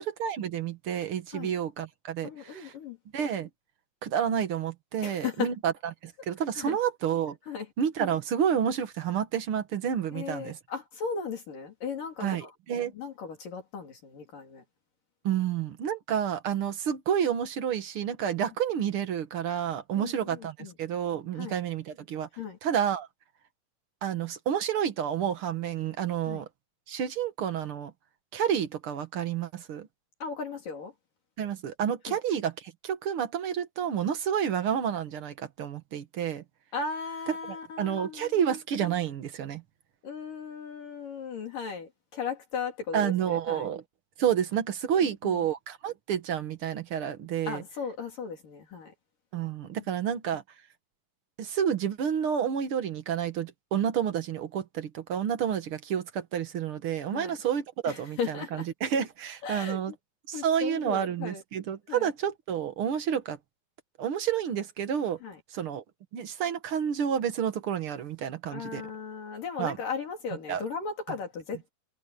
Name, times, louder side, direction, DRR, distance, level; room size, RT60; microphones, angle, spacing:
voice 1, 0.0-2.7 3.1-3.5 4.0-5.7 6.0-7.4 7.8-10.6 12.2-12.9 15.2-22.3 22.6-23.1 24.0-26.5 26.9-27.9 28.3-29.9 31.4-36.4 37.5-39.6 42.9-43.8 44.2-47.6 49.3-50.4 51.4-59.9 60.3-63.4 64.0-65.2 65.5-65.8 66.1-68.8 69.6-69.8 70.5-70.6, right 8 dB, 55° right, 1.5 m, -30 dB
voice 2, 2.2-3.0 5.0-5.5 6.6-6.8 7.5-7.7 10.1-12.5 12.9-14.6 20.0-20.7 21.4-21.6 22.4-22.6 26.3-26.4 30.2-30.9 32.1-32.2 36.7-38.4 40.0-43.7 45.2-45.4 47.5-48.9 57.1-57.4 57.9-58.7 59.4-59.8 60.3-61.4 61.9-62.1 65.2-65.4 68.5-71.7, left 5 dB, 65° left, 5.0 m, -36 dB
omnidirectional pair, 4.2 m